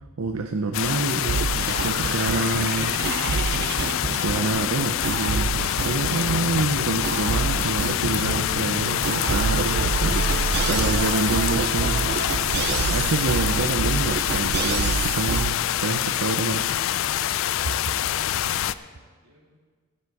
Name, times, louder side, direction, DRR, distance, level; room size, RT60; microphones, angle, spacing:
voice 1, 0.2-3.0 3.8-10.3 10.7-16.8, right 3 dB, 80° right, 6 dB, 0.7 m, -28 dB
sound 1, 0.7-18.7, left 11 dB, 65° left, 0.3 m, -26 dB
sound 2, 1.2-15.5, right 5 dB, 50° right, 0.3 m, -27 dB
sound 3, 2.8-8.9 9.3-9.4, left 2 dB, 40° left, 0.8 m, -40 dB
voice 2, 18.2-19.6, right 1 dB, 65° right, -5 dB, 3.6 m, -55 dB
12.5 x 9.8 x 4.8 m, 1.5 s
head